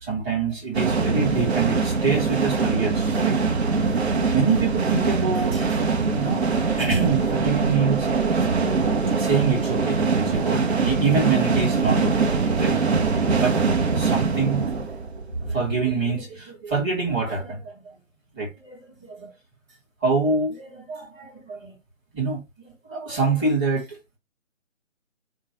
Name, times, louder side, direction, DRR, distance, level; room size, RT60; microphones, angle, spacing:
voice 1, 0.0-3.4 4.3-5.8 6.1-6.5 6.8-8.5 9.1-12.3 12.6-12.8 13.4-14.7 15.4-17.8 18.3-19.3 20.0-21.7 22.1-22.4 22.9-24.0, right 4 dB, 15° right, 1.7 m, -25 dB
sound 1, 0.7-15.5, right 4 dB, 55° right, 0.9 m, -23 dB
3.2 x 2.3 x 3.8 m
hypercardioid pair, 160°, 39 cm